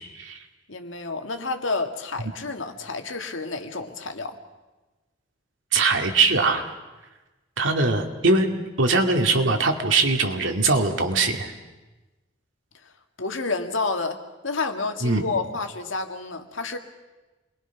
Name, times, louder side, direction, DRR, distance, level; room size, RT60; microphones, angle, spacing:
voice 1, 0.7-4.4 13.2-16.8, left 3 dB, 85° left, 6 dB, 1.9 m, -29 dB
voice 2, 5.7-6.7 7.6-8.5 8.8-11.5 15.0-15.2, right 3 dB, 80° right, 5 dB, 2.3 m, -21 dB
27.5 x 21.5 x 6.0 m, 1.1 s
head